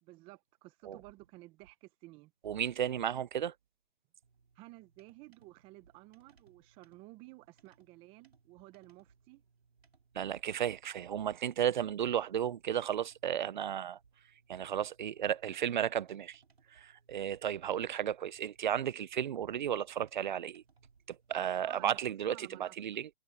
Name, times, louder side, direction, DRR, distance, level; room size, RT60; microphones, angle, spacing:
voice 1, 0.0-2.3 4.5-9.4 21.6-22.0 22.3-22.7, right 20 dB, 15° right, 1.3 m, -54 dB
voice 2, 2.4-3.5 10.1-14.0 14.5-16.4 16.7-20.6 21.1-23.1, right 9 dB, 50° right, 0.9 m, -34 dB
sound 1, 4.2-22.1, right 5 dB, 85° right, 4.4 m, -68 dB
hypercardioid pair, 155°, 30 cm